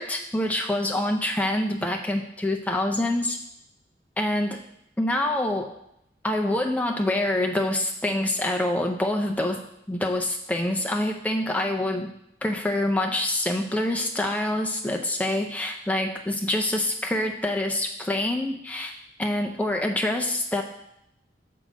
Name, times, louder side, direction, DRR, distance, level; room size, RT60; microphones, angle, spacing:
voice 1, 0.0-3.4 4.2-4.6 5.0-5.7 6.2-9.6 9.9-12.1 12.4-18.9 19.2-20.6, left 1 dB, 10° left, 2 dB, 0.5 m, -26 dB
6.6 x 3.7 x 5.0 m, 0.78 s
head